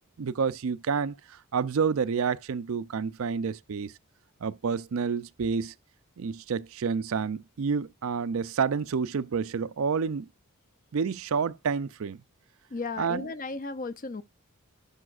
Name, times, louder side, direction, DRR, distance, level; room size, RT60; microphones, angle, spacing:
voice 1, 0.2-3.9 4.4-5.7 6.2-10.3 10.9-12.2 13.0-13.3, right 5 dB, 65° right, 0.4 m, -29 dB
voice 2, 12.7-14.2, left 3 dB, 35° left, 0.5 m, -35 dB
11.0 x 5.5 x 2.4 m
head